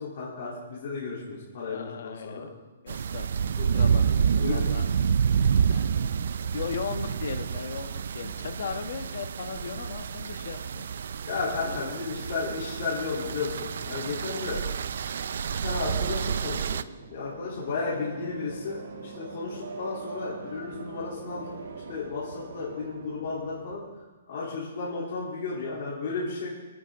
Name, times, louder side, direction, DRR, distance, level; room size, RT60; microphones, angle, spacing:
voice 1, 0.0-2.4 3.6-3.7 4.4-4.7 11.3-14.6 15.6-23.8 24.3-26.5, left 4 dB, 45° left, -7 dB, 3.2 m, -33 dB
voice 2, 1.6-2.5 2.8-3.3 3.7-4.8 5.7-5.9 6.5-10.9 11.6-11.9 14.0-14.1 24.4-24.6, left 6 dB, 60° left, 8 dB, 1.3 m, -37 dB
sound 1, 2.9-16.8, right 7 dB, 60° right, 0.5 m, -28 dB
sound 2, 16.4-23.8, right 4 dB, 80° right, 1.6 m, -42 dB
27.0 x 9.5 x 3.7 m, 1.2 s
hypercardioid pair, 180°, 0 cm